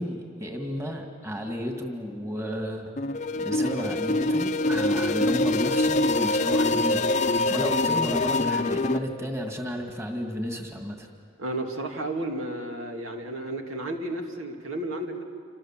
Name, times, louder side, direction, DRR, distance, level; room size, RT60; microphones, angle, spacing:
voice 1, 0.0-2.9 3.4-11.1, equal, 15° right, 2 dB, 2.1 m, -33 dB
sound 1, 3.0-9.0, left 2 dB, 35° left, 0.6 m, -24 dB
voice 2, 11.4-15.2, right 1 dB, 85° right, 3 dB, 2.5 m, -32 dB
27.5 x 26.5 x 7.5 m, 2.2 s
head